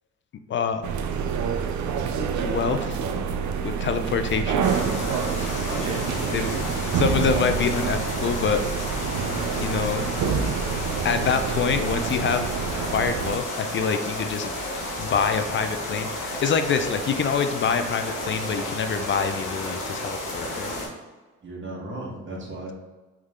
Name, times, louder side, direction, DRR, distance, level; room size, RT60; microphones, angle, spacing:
voice 1, 0.5-0.8 2.4-3.0 3.6-4.7 6.3-6.5 6.9-8.6 9.6-10.1 11.0-20.7, left 6 dB, 40° left, 8 dB, 0.4 m, -26 dB
sound 1, 0.8-13.4, right 6 dB, 70° right, 0.5 m, -27 dB
sound 2, 4.6-20.9, left 1 dB, 85° left, 1.1 m, -32 dB
voice 2, 5.7-7.0 11.2-11.5 21.4-22.7, right 2 dB, 40° right, -3 dB, 1.4 m, -35 dB
3.6 x 3.1 x 3.6 m, 1.2 s
cardioid pair, 90°, 30 cm